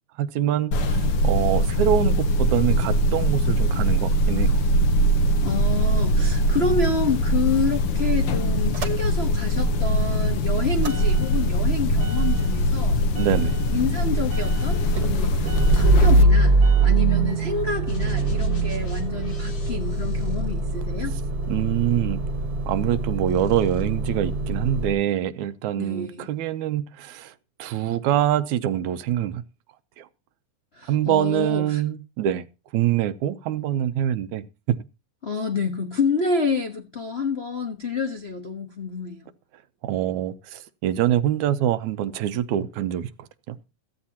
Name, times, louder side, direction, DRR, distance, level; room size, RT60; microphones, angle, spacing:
voice 1, 0.2-4.6 13.2-13.5 21.5-22.2 22.7-27.3 27.6-29.4 30.0-30.1 30.9-32.4 32.7-34.8 39.8-43.6, right 11 dB, 90° right, 2.2 m, -25 dB
sound 1, 0.7-16.2, equal, 65° left, 1.6 m, -22 dB
voice 2, 5.4-13.0 13.5-21.1 25.8-26.3 30.7-31.8 35.2-39.2, left 4 dB, 85° left, 0.5 m, -28 dB
Motor vehicle (road) / Engine starting / Idling, 6.5-9.6 10.0-24.9, right 2 dB, 45° right, 1.6 m, -24 dB
sound 2, 17.9-21.2 21.9-23.0 23.2-23.8, left 1 dB, 45° left, 5.2 m, -38 dB
16.0 x 14.0 x 2.9 m
omnidirectional pair, 3.3 m